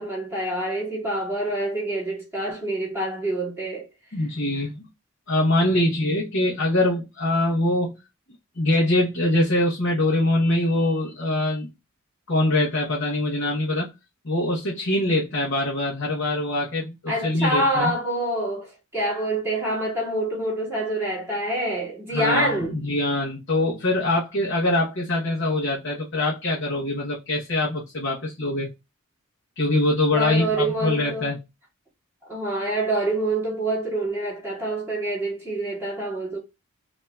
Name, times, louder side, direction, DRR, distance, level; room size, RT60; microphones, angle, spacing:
voice 1, 0.0-3.9 17.1-22.8 30.1-31.3 32.3-36.4, right 1 dB, 10° right, 2.3 m, -26 dB
voice 2, 4.1-4.9 5.3-8.0 8.6-11.7 12.3-13.9 14.2-17.9 22.1-28.7 29.6-31.4, left 1 dB, 55° left, 1.0 m, -23 dB
5.4 x 2.8 x 2.3 m
head